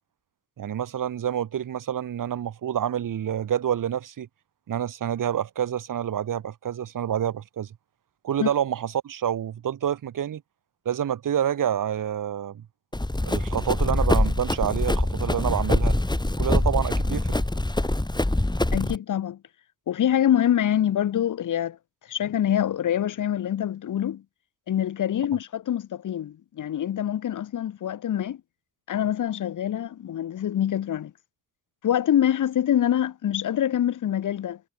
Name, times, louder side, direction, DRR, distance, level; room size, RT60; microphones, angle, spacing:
voice 1, 0.6-4.3 4.7-7.7 8.2-10.4 10.9-12.6 13.3-16.0 16.4-17.4, right 9 dB, 75° right, 3.6 m, -28 dB
Run, 12.9-19.0, left 1 dB, 15° left, 3.3 m, -24 dB
voice 2, 18.7-19.4 19.9-21.8 22.1-24.2 24.7-28.4 28.9-31.1 31.8-34.6, left 10 dB, 70° left, 1.1 m, -25 dB
supercardioid pair, 50°, 32 cm